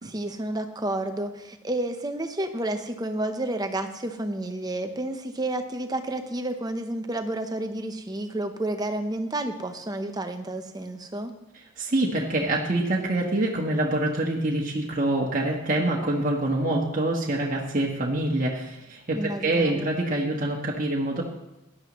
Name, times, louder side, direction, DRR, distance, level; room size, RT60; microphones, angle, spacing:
voice 1, 0.0-11.3 19.1-19.9, right 1 dB, 20° right, 7 dB, 0.8 m, -30 dB
voice 2, 11.8-21.2, right 1 dB, 40° right, -2 dB, 1.3 m, -25 dB
17.0 x 11.0 x 3.1 m, 0.96 s
head